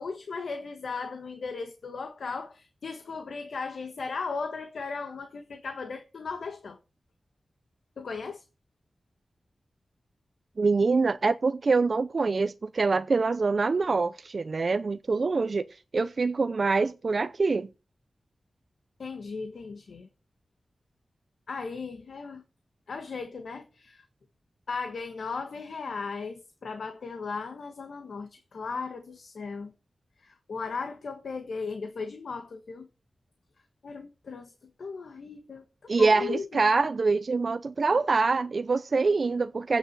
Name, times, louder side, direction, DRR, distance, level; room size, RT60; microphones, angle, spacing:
voice 1, 0.0-6.8 8.0-8.4 19.0-20.1 21.5-22.4 22.9-24.0 24.7-29.7 30.2-32.9 33.8-34.5 34.8-36.7, left 4 dB, 80° left, 1.5 m, -37 dB
voice 2, 10.6-15.6 15.9-17.7 35.9-39.8, right 4 dB, 55° right, 0.6 m, -25 dB
9.1 x 7.0 x 8.7 m
wide cardioid pair, 80°, 0 cm